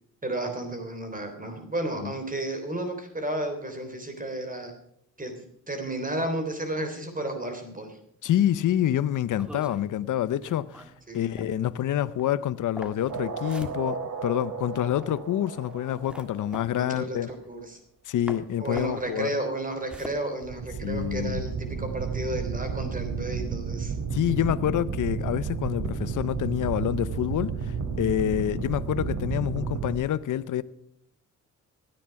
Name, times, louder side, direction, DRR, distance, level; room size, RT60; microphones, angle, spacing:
voice 1, 0.2-4.7 5.2-5.3 5.7-8.0 11.1-11.4 16.7-17.8 18.6-23.9, right 1 dB, 25° right, 3.4 m, -32 dB
voice 2, 8.2-17.3 18.1-19.3 20.8-21.4 24.1-30.6, left 11 dB, 70° left, 0.7 m, -27 dB
sound 1, 9.4-18.0 18.3-21.2, equal, 5° right, 1.6 m, -45 dB
sound 2, 13.1-17.0 20.4-29.9, right 6 dB, 65° right, 2.7 m, -32 dB
15.5 x 10.0 x 5.8 m
cardioid pair, 80°, 32 cm